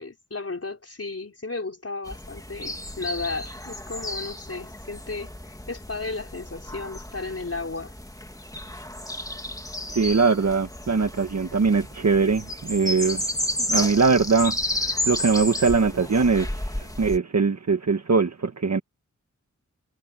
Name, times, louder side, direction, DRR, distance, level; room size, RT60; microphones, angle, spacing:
voice 1, 0.0-8.0, left 3 dB, 50° left, 4.4 m, -34 dB
sound 1, 2.1-17.2, left 1 dB, 10° left, 2.6 m, -32 dB
voice 2, 9.9-13.3 13.7-16.5 16.8-18.8, right 4 dB, 60° right, 1.4 m, -22 dB
wide cardioid pair, 60°, 31 cm